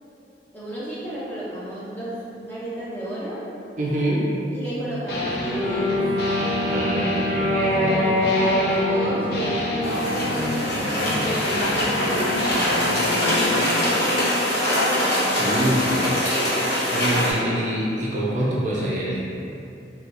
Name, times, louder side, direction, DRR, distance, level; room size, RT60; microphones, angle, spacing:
voice 1, 0.5-3.4 4.5-6.0 7.7-14.2, right 1 dB, 10° left, -10 dB, 0.7 m, -32 dB
voice 2, 3.8-4.3 6.7-7.9 15.4-16.0 16.4-16.5 16.9-19.2, right 1 dB, 45° right, -5 dB, 0.4 m, -25 dB
sound 1, 5.1-13.8, left 1 dB, 65° left, 0.5 m, -28 dB
Wind instrument woodwind instrument, 5.5-10.5, left 1 dB, 50° left, 1.0 m, -24 dB
sound 2, 9.8-17.3, left 1 dB, 80° left, 1.1 m, -23 dB
4.2 x 2.3 x 2.4 m, 2.7 s
head